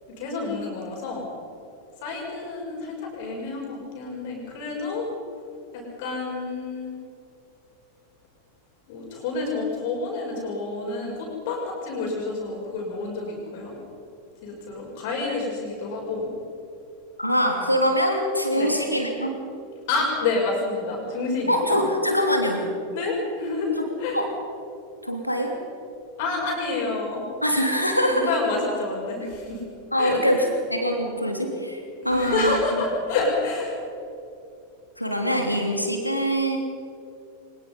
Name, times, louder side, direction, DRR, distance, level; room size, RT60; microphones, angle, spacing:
voice 1, 0.2-1.3 2.0-5.0 5.7-7.0 8.9-13.7 14.4-16.3 18.6-18.7 19.9-21.8 22.9-23.7 24.0-24.2 26.2-27.2 28.1-29.6 30.0-30.5 32.0-33.7, left 3 dB, 50° left, -1 dB, 6.0 m, -28 dB
voice 2, 17.2-19.4 21.5-22.6 23.8-23.9 24.1-24.3 25.0-25.6 27.4-28.3 29.9-32.8 35.0-36.6, equal, 90° left, 3 dB, 3.0 m, -23 dB
23.5 x 21.0 x 5.6 m, 2.6 s
figure-of-eight pair, 90°, 0 cm